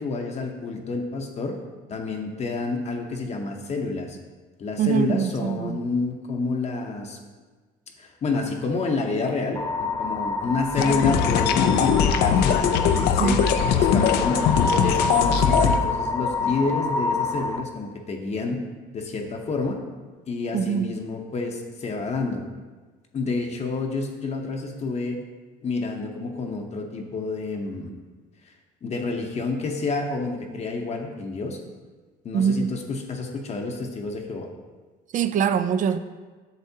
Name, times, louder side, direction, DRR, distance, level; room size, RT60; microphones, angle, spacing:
voice 1, 0.0-1.6 1.9-4.2 4.6-7.2 8.0-13.4 13.7-18.6 18.9-19.8 20.3-22.4 23.1-25.2 25.6-27.9 28.4-28.5 28.8-31.6 32.2-34.5, left 3 dB, 40° left, 2 dB, 0.8 m, -29 dB
voice 2, 4.8-5.7 13.2-13.5 20.5-20.9 32.3-32.7 35.1-36.0, right 7 dB, 50° right, 11 dB, 0.4 m, -23 dB
sound 1, 9.6-17.6, left 3 dB, 20° left, 0.4 m, -27 dB
sound 2, 10.8-15.8, left 8 dB, 80° left, 0.5 m, -21 dB
8.0 x 6.4 x 2.8 m, 1.4 s
cardioid pair, 110°, 17 cm